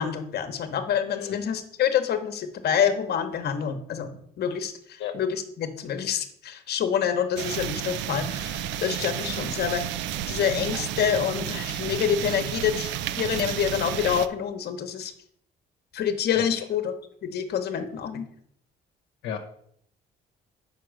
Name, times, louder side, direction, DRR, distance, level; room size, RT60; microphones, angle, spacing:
voice 1, 0.0-9.8 10.3-15.1 15.9-16.9 17.2-18.3, left 8 dB, 60° left, 8 dB, 1.0 m, -27 dB
voice 2, 1.1-1.4 5.0-5.1 9.3-9.5 16.3-16.4 19.2-19.4, left 8 dB, 85° left, 4 dB, 0.8 m, -34 dB
sound 1, 7.4-14.3, right 11 dB, 85° right, 0.4 m, -31 dB
5.4 x 4.6 x 6.3 m, 0.66 s
cardioid pair, 90°, 18 cm